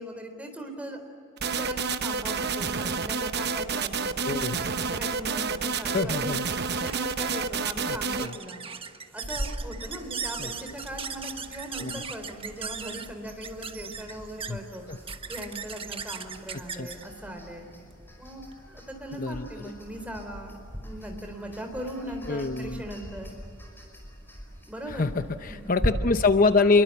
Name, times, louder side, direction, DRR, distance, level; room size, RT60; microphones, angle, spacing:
voice 1, 0.0-4.2 4.7-6.4 6.7-8.6 9.1-14.8 15.3-17.7 18.2-23.4 24.7-25.2 25.5-25.7, equal, 5° right, 4 dB, 3.9 m, -39 dB
sound 1, 1.4-8.3, right 5 dB, 55° right, 0.9 m, -29 dB
voice 2, 4.2-4.7 5.9-6.4 7.9-8.4 10.4-10.5 11.8-11.9 14.5-14.6 14.9-15.0 16.5-16.9 19.2-19.7 22.3-22.8 24.9-26.8, left 3 dB, 45° left, 9 dB, 0.8 m, -25 dB
sound 2, 6.8-18.6, right 6 dB, 30° right, 1.2 m, -39 dB
sound 3, 9.2-25.9, equal, 10° left, 5.4 m, -41 dB
28.0 x 23.0 x 8.4 m, 2.6 s
head